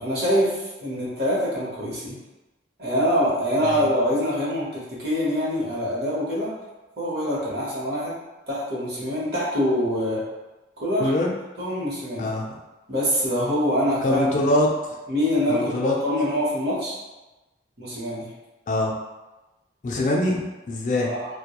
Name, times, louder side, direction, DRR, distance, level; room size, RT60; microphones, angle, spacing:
voice 1, 0.0-2.2 2.8-6.5 7.0-8.1 8.5-10.2 10.8-11.1 11.6-12.3 12.9-14.3 15.1-17.0 17.8-18.3 21.0-21.3, equal, 60° right, -6 dB, 0.9 m, -24 dB
voice 2, 12.2-12.5 14.0-14.7 15.5-16.0 18.7-18.9 19.8-21.1, left 1 dB, 45° left, 0 dB, 0.3 m, -23 dB
2.3 x 2.1 x 2.9 m, 1.1 s
head